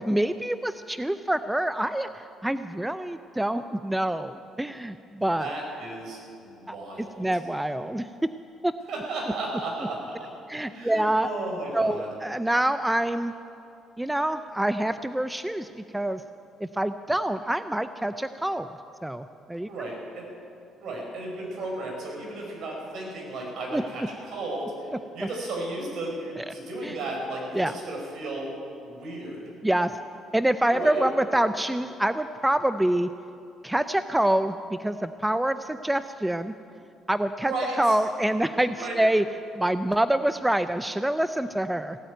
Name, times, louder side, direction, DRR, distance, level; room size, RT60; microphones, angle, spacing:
voice 1, 0.0-5.5 6.7-8.1 8.6-8.7 10.5-11.3 11.7-13.3 14.0-16.2 16.6-18.7 19.0-19.7 23.7-23.8 25.2-25.3 26.5-26.6 26.8-27.0 27.5-27.7 29.6-29.9 30.3-33.1 33.6-36.5 37.1-37.5 37.8-39.2 39.6-42.0, right 1 dB, 10° right, 11 dB, 0.5 m, -26 dB
voice 2, 5.4-7.3 8.9-10.3 10.7-12.1 19.6-20.2 20.8-28.5 28.8-29.4 30.7-31.0 37.4-38.0 38.7-39.0, right 2 dB, 65° right, -1 dB, 5.1 m, -34 dB
17.0 x 8.7 x 9.1 m, 2.6 s
supercardioid pair, 60°, 0 cm